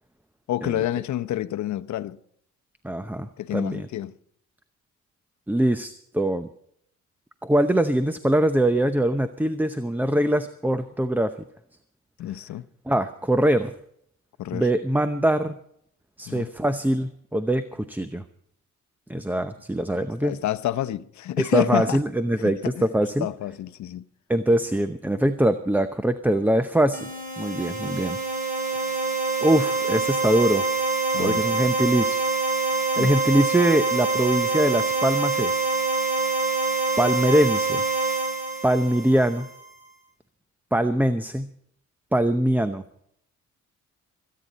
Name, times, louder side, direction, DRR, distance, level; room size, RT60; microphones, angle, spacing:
voice 1, 0.5-2.2 3.4-4.1 12.2-12.6 14.4-14.7 16.3-16.5 20.2-22.0 22.4-22.9 23.2-24.0 31.1-31.4 33.0-33.1, left 12 dB, 70° left, 0.9 m, -28 dB
voice 2, 2.8-3.9 5.5-6.5 7.4-11.3 12.9-13.7 14.5-15.6 16.2-18.2 19.1-20.4 21.4-23.3 24.3-28.2 29.4-30.7 31.2-32.3 33.0-35.7 37.0-37.8 38.6-39.5 40.7-41.5 42.1-42.8, right 1 dB, 5° right, 0.7 m, -23 dB
sound 1, 26.9-39.6, right 4 dB, 25° right, 4.0 m, -25 dB
26.0 x 9.5 x 4.1 m
cardioid pair, 90°, 30 cm